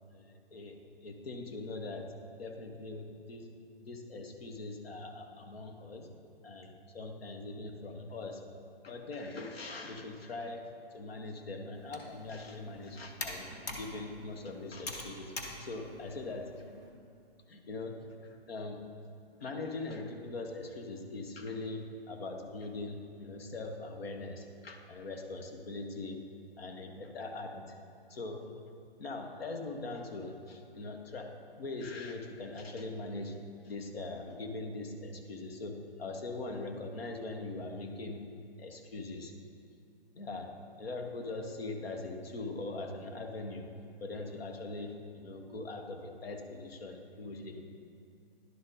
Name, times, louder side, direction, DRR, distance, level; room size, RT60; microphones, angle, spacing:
voice 1, 0.1-0.8 1.0-3.5 3.8-6.1 6.4-8.4 8.8-10.6 10.9-15.3 15.6-16.5 17.5-18.8 19.4-26.2 26.6-27.8 28.1-28.6 29.0-31.3 31.6-33.3 33.6-38.3 38.6-39.3 40.1-40.5 40.8-43.7 44.0-47.6, left 2 dB, 75° left, 4 dB, 1.1 m, -41 dB
Computer keyboard, 11.7-16.9, left 1 dB, 15° left, 0.4 m, -45 dB
11.0 x 4.0 x 3.8 m, 2.6 s
hypercardioid pair, 150°, 31 cm